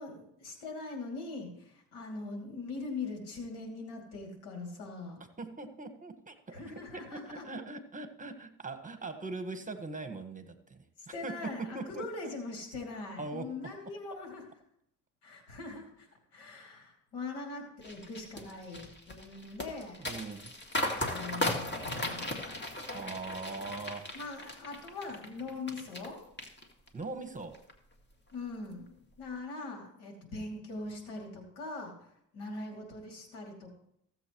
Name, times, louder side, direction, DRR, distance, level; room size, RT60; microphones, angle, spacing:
voice 1, 0.0-5.2 6.5-7.4 11.0-14.5 15.2-20.1 21.1-22.4 24.1-26.2 28.3-33.7, left 3 dB, 80° left, 2 dB, 2.8 m, -42 dB
voice 2, 5.4-6.6 6.9-10.8 11.2-11.3 11.7-12.0 13.2-13.5 20.0-20.5 22.9-24.1 26.9-27.6, right 3 dB, 20° right, 8 dB, 1.5 m, -41 dB
sound 1, 17.8-26.1 26.4-27.0 27.4-27.7, left 1 dB, 30° left, 2.1 m, -37 dB
15.5 x 7.6 x 3.1 m, 0.73 s
supercardioid pair, 65°, 38 cm